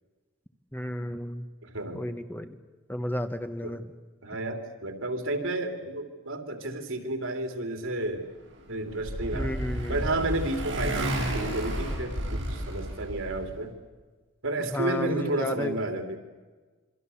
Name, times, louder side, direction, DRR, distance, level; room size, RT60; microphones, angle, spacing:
voice 1, 0.7-1.5 1.9-2.6 2.9-3.9 9.3-10.0 14.7-15.8, equal, 10° left, 8 dB, 1.1 m, -32 dB
voice 2, 1.6-2.0 3.6-3.7 4.2-8.3 8.7-9.5 9.9-13.7 14.4-16.2, right 2 dB, 90° right, 5 dB, 3.1 m, -31 dB
Motorcycle, 8.5-13.5, right 1 dB, 70° right, 7.0 m, -32 dB
27.0 x 24.0 x 7.1 m, 1.3 s
head